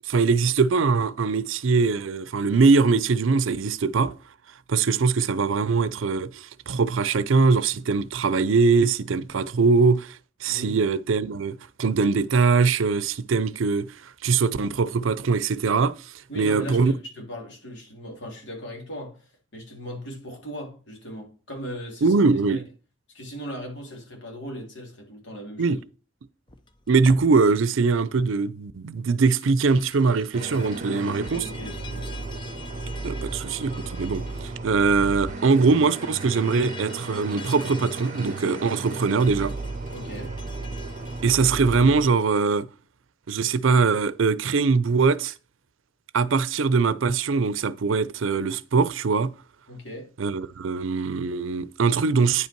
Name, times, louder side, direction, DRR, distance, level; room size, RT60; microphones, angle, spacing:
voice 1, 0.1-4.1 4.7-16.9 22.0-22.6 25.6-25.8 26.9-31.5 33.0-39.5 41.2-42.7 43.3-45.3 46.1-49.3 50.2-52.5, right 4 dB, 80° right, 0.5 m, -22 dB
voice 2, 10.5-10.8 16.3-22.2 22.5-22.6 23.1-25.8 30.8-32.1 39.9-40.3 49.7-50.1, equal, 65° left, 3.2 m, -38 dB
sound 1, 26.5-27.3 29.1-41.2, left 4 dB, 25° left, 0.6 m, -46 dB
sound 2, 30.3-42.1, right 3 dB, 40° right, 0.8 m, -35 dB
9.5 x 5.5 x 4.5 m
head